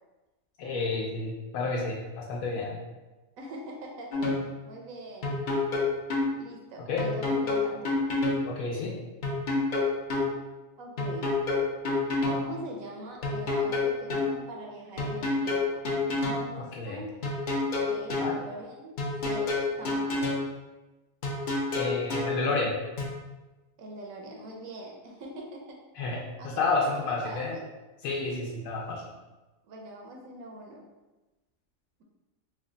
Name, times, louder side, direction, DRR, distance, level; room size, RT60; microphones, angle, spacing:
voice 1, 0.6-2.8 6.9-7.0 8.5-9.0 16.6-17.0 18.2-18.4 21.7-22.7 25.9-27.6 28.0-29.1, left 3 dB, 85° left, -3 dB, 1.0 m, -30 dB
voice 2, 3.4-5.4 6.4-7.9 10.8-11.3 12.3-15.8 16.1-17.1 17.7-18.9 19.2-20.4 23.8-25.8 26.4-27.6 29.7-30.8, right 1 dB, 80° right, 0 dB, 1.0 m, -43 dB
sound 1, 4.1-4.4 5.2-6.3 7.0-8.4 9.2-10.3 11.0-12.4 13.2-14.3 15.0-16.4 17.2-18.3 19.0-20.4 21.2-22.3 23.0-23.1, left 3 dB, 50° left, 0.6 m, -28 dB
3.2 x 2.2 x 3.7 m, 1.1 s
omnidirectional pair, 1.4 m